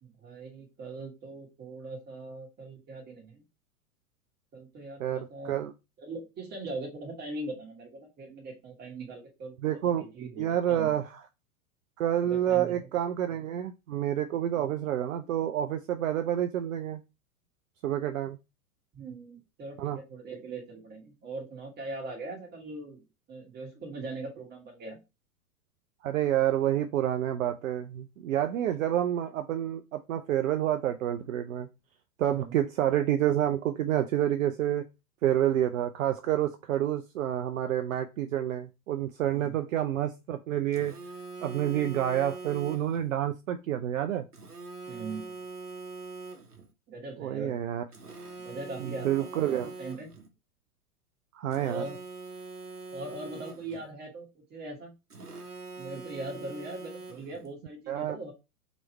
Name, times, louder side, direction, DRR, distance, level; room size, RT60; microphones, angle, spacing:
voice 1, 0.0-3.4 4.5-5.6 6.0-10.9 12.2-12.8 14.5-14.6 18.9-25.0 32.3-32.5 44.9-45.4 46.9-47.6 48.4-50.1 51.6-52.0 52.9-54.9 55.8-58.3, right 2 dB, 20° right, 0 dB, 1.6 m, -41 dB
voice 2, 5.0-5.7 9.6-10.0 10.4-11.2 12.0-17.0 17.8-18.4 19.8-20.0 26.0-31.7 32.2-34.8 35.2-40.9 41.4-44.3 47.2-47.8 48.8-49.7 51.3-51.8 57.9-58.2, right 11 dB, 60° right, 8 dB, 0.5 m, -28 dB
Telephone, 40.7-43.1 44.3-46.7 47.9-50.3 51.5-53.9 55.1-57.5, right 3 dB, 90° right, 0.8 m, -43 dB
3.1 x 3.0 x 4.2 m, 0.26 s
figure-of-eight pair, 100°, 45 cm